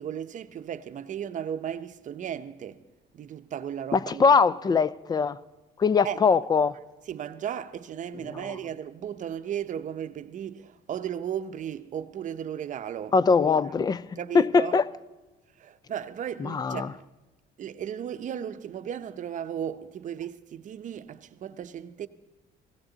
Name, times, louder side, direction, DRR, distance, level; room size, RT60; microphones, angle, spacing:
voice 1, 0.0-2.8 3.1-4.4 6.0-6.2 7.1-13.1 14.2-14.8 15.6-17.1 17.6-22.1, right 9 dB, 50° right, 0.7 m, -35 dB
voice 2, 3.9-5.4 5.8-6.7 8.3-8.6 13.1-14.0 14.3-14.9 16.4-16.9, left 5 dB, 25° left, 0.4 m, -22 dB
17.5 x 17.0 x 4.0 m
cardioid pair, 110°, 17 cm